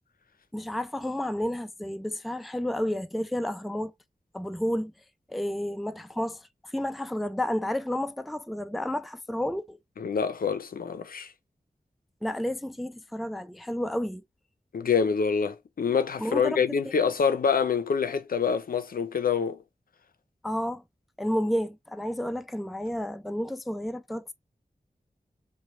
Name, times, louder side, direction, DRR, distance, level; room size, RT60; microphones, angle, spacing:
voice 1, 0.5-3.9 4.3-4.9 5.3-9.8 12.2-14.2 16.2-16.9 20.4-20.8 21.2-24.3, left 1 dB, ahead, 0.4 m, -31 dB
voice 2, 10.0-11.3 14.7-19.6, left 6 dB, 75° left, 0.5 m, -26 dB
3.1 x 2.3 x 4.2 m
cardioid pair, 45°, 15 cm